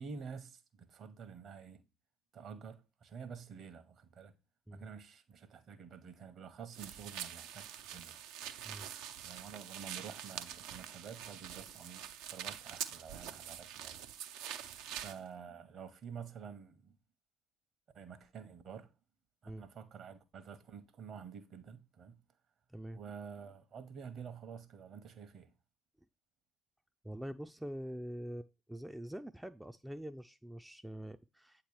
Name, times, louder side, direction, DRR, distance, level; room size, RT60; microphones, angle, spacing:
voice 1, 0.0-1.8 2.3-4.3 4.7-8.2 9.2-14.0 14.9-16.9 17.9-18.9 19.4-22.2 22.9-25.5, right 6 dB, 55° right, 1.0 m, -49 dB
sound 1, 6.7-15.2, right 10 dB, 70° right, 0.5 m, -45 dB
voice 2, 27.0-31.6, equal, 5° right, 0.4 m, -45 dB
8.2 x 3.0 x 4.7 m
hypercardioid pair, 55°, 0 cm